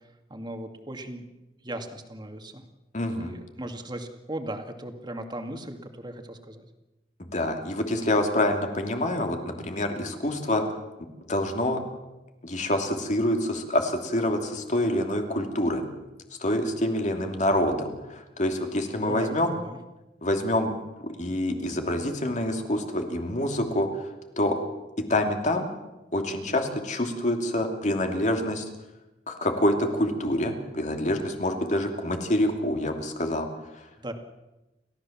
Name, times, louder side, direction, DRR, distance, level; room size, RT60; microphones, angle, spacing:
voice 1, 0.3-1.3 1.6-2.6 3.2-6.6 19.0-19.8 34.0-34.1, right 1 dB, 25° right, 5 dB, 2.3 m, -37 dB
voice 2, 2.9-3.3 7.3-10.7 11.3-11.8 12.4-15.8 16.4-19.5 20.2-20.7 21.0-24.0 24.4-24.6 25.1-25.7 26.1-28.6 29.3-33.5, left 1 dB, 45° left, 4 dB, 2.9 m, -26 dB
29.5 x 14.5 x 7.4 m, 1.0 s
head